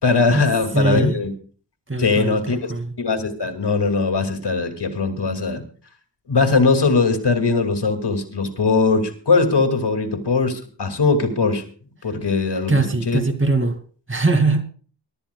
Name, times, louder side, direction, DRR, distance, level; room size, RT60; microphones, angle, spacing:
voice 1, 0.0-1.3 2.0-2.7 3.0-5.6 6.3-11.6 12.0-12.7 13.1-13.2, left 4 dB, 65° left, 2.6 m, -20 dB
voice 2, 0.7-1.2 1.9-2.9 12.7-13.8 14.1-14.6, right 3 dB, 25° right, 2.5 m, -21 dB
23.5 x 12.5 x 2.4 m
cardioid pair, 45°, 45 cm